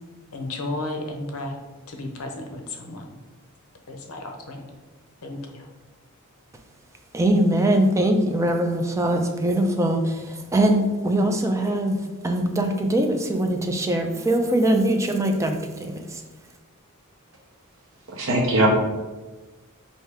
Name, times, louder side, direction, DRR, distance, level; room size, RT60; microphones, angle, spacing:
voice 1, 0.3-1.5 1.9-3.0 3.9-4.6 5.2-5.7, left 2 dB, 70° left, 4 dB, 0.6 m, -33 dB
voice 2, 7.1-12.0 12.2-16.2, right 1 dB, 15° right, 4 dB, 0.4 m, -22 dB
voice 3, 18.1-18.7, right 1 dB, 65° right, -1 dB, 0.8 m, -20 dB
4.7 x 2.7 x 3.3 m, 1.2 s
head